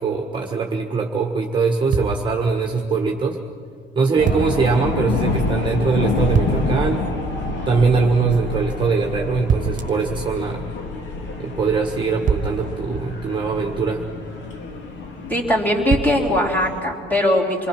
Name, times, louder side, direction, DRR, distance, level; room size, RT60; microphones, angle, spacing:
voice 1, 0.0-3.4 3.9-7.0 7.7-10.7 11.4-14.0, right 4 dB, 25° right, 2 dB, 1.4 m, -21 dB
sound 1, 1.9-2.7 4.3-4.8 6.3-6.9 9.5-10.1 12.3-13.7 15.9-16.7, right 6 dB, 40° right, 1.3 m, -25 dB
sound 2, 4.2-16.8, left 3 dB, 65° left, 2.6 m, -28 dB
voice 2, 15.3-17.7, left 1 dB, 10° left, -2 dB, 3.2 m, -20 dB
27.5 x 21.5 x 6.0 m, 2.1 s
cardioid pair, 135°, 21 cm